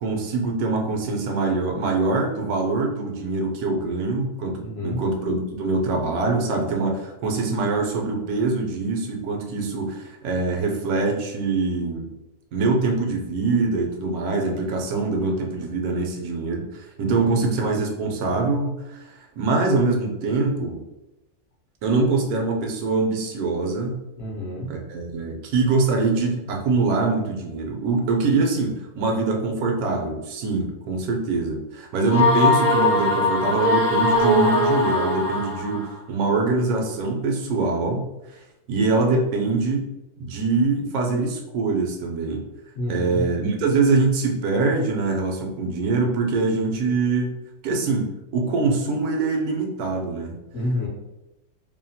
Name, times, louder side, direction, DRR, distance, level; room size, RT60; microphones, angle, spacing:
voice 1, 0.0-12.1 12.5-20.8 21.8-24.0 24.7-38.1 38.7-39.9 40.2-42.4 42.9-47.3 47.6-50.4, right 3 dB, 80° right, 1 dB, 1.0 m, -24 dB
voice 2, 4.6-5.0 17.0-17.4 24.2-24.9 42.7-43.3 50.5-50.9, left 1 dB, 60° left, -4 dB, 0.8 m, -29 dB
sound 1, 32.1-35.9, left 2 dB, 50° right, 0.5 m, -20 dB
2.7 x 2.2 x 2.7 m, 0.95 s
omnidirectional pair, 1.6 m